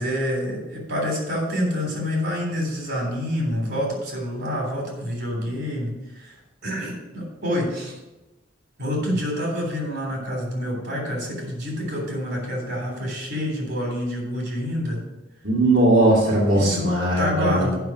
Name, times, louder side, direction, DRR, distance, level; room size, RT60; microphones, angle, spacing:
voice 1, 0.0-6.3 6.6-8.0 8.8-15.0 16.5-16.9 17.2-17.7, equal, 60° right, -1 dB, 3.4 m, -27 dB
voice 2, 15.4-17.7, right 1 dB, 80° right, -6 dB, 2.4 m, -19 dB
9.3 x 5.7 x 6.1 m, 1.0 s
head